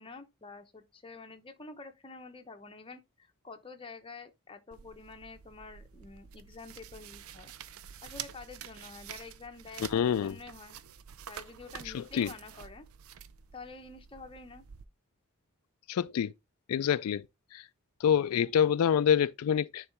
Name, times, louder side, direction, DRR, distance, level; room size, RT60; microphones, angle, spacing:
voice 1, 0.0-7.5 8.0-10.8 11.3-12.9 13.5-14.6, left 3 dB, 25° left, 0.9 m, -48 dB
sound 1, 4.7-14.8, right 8 dB, 75° right, 0.6 m, -48 dB
voice 2, 9.9-10.3 11.9-12.3 15.9-16.3 16.7-17.2 17.5-17.6 18.0-19.9, left 8 dB, 90° left, 0.3 m, -26 dB
9.7 x 4.0 x 3.4 m
head